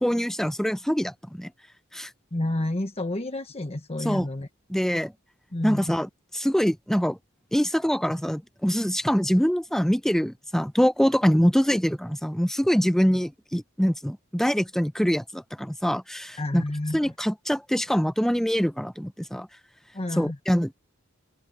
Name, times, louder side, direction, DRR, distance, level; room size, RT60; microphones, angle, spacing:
voice 1, 0.0-1.5 1.9-2.1 4.0-4.3 4.7-5.1 5.6-7.2 7.5-16.6 16.9-19.5 20.2-20.7, equal, ahead, 0.9 m, -24 dB
voice 2, 2.3-4.5 5.5-5.9 16.4-17.0 19.9-20.4, left 1 dB, 30° left, 1.3 m, -30 dB
open air
head